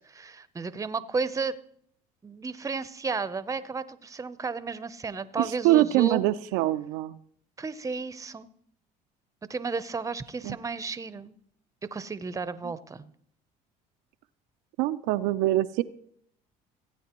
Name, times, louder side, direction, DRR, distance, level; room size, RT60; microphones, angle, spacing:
voice 1, 0.0-1.6 2.2-6.3 7.6-8.5 9.5-11.3 11.9-13.1, right 4 dB, 20° right, 15 dB, 0.6 m, -33 dB
voice 2, 5.4-7.2 10.4-10.6 14.8-15.8, right 15 dB, 80° right, 9 dB, 0.4 m, -24 dB
16.0 x 8.7 x 3.0 m, 0.64 s
supercardioid pair, 75°, 17 cm